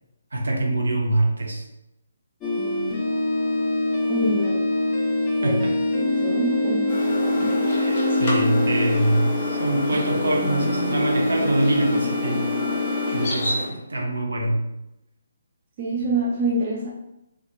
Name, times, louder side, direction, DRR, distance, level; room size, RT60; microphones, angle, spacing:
voice 1, 0.3-1.7 5.4-5.7 7.4-12.5 13.1-14.6, right 1 dB, 70° right, -1 dB, 0.7 m, -24 dB
sound 1, 2.4-13.3, left 2 dB, 15° left, 0.5 m, -24 dB
voice 2, 4.1-4.8 5.4-5.6 5.9-6.9 15.8-16.9, right 2 dB, 35° right, -3 dB, 0.4 m, -26 dB
sound 2, 6.9-13.7, left 1 dB, 40° left, 0.9 m, -29 dB
2.8 x 2.4 x 2.3 m, 0.89 s
figure-of-eight pair, 145°, 0 cm